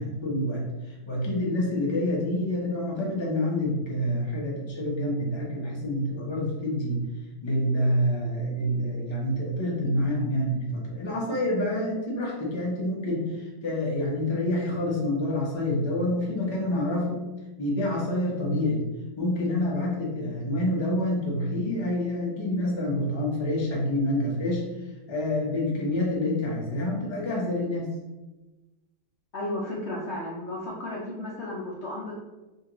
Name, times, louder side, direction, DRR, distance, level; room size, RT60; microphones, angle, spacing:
voice 1, 0.0-7.0 7.4-17.2 17.6-18.9 19.2-27.9, left 1 dB, 30° left, -3 dB, 0.5 m, -27 dB
voice 2, 29.3-32.1, left 1 dB, 80° left, -4 dB, 0.6 m, -33 dB
5.1 x 2.5 x 3.0 m, 1.1 s
omnidirectional pair, 2.0 m